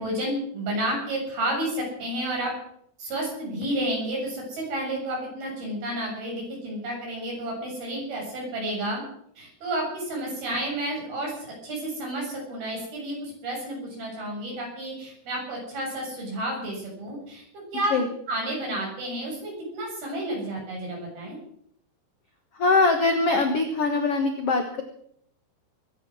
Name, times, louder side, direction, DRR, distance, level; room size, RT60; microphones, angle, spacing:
voice 1, 0.0-2.6 3.0-9.0 9.4-17.4 17.7-18.0 18.3-21.4, right 1 dB, 60° right, -1 dB, 9.2 m, -31 dB
voice 2, 22.6-24.8, left 3 dB, 60° left, 5 dB, 1.6 m, -22 dB
22.0 x 10.5 x 6.3 m, 0.69 s
omnidirectional pair, 4.8 m